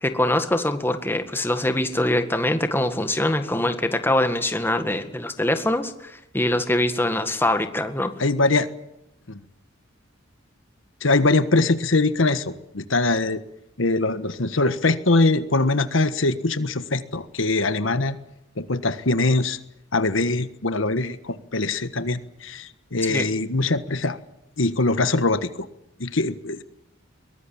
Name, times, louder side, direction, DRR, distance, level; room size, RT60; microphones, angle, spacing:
voice 1, 0.0-8.1 23.1-23.3, left 1 dB, 10° left, 8 dB, 1.8 m, -23 dB
voice 2, 8.2-8.7 9.3-9.4 11.0-13.4 13.8-18.2 18.6-19.6 19.9-24.2 24.6-25.5 26.0-26.6, left 2 dB, 85° left, 11 dB, 1.5 m, -22 dB
22.5 x 19.5 x 8.8 m, 0.85 s
head